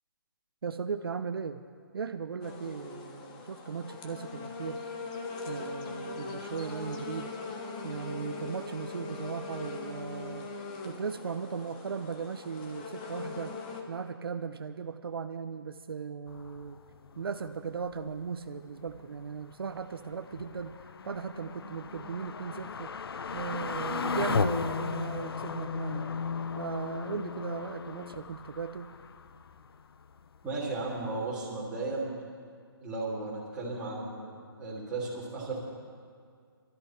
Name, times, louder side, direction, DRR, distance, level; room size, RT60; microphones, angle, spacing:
voice 1, 0.6-1.6 1.9-4.8 5.5-7.3 7.8-10.5 10.8-16.8 17.2-23.0 23.3-26.3 26.6-29.0, right 6 dB, 70° right, 8 dB, 0.7 m, -37 dB
sound 1, 2.4-13.8, left 4 dB, 20° left, 1.0 m, -41 dB
sound 2, 16.3-30.4 30.8-30.9 31.2-31.3, left 5 dB, 75° left, 0.6 m, -36 dB
voice 2, 30.4-32.1 32.8-34.3 34.6-35.6, right 3 dB, 5° right, -9 dB, 3.1 m, -35 dB
21.0 x 13.5 x 4.4 m, 2.1 s
hypercardioid pair, 170°, 13 cm